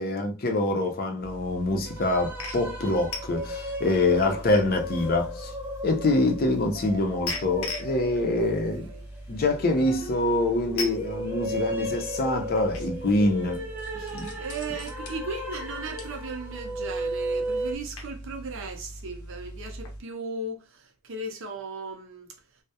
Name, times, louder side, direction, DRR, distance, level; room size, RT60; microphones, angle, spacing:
voice 1, 0.0-5.5 5.8-8.9 9.3-13.6 14.1-14.3, left 2 dB, 45° left, 0.5 m, -25 dB
sound 1, 1.2-20.0, left 1 dB, 85° left, 0.6 m, -40 dB
sound 2, 1.9-17.8, equal, 10° right, 0.4 m, -35 dB
voice 2, 3.8-4.4 7.9-8.0 8.8-9.0 14.0-22.3, right 3 dB, 60° right, 0.5 m, -37 dB
2.2 x 2.0 x 2.7 m
head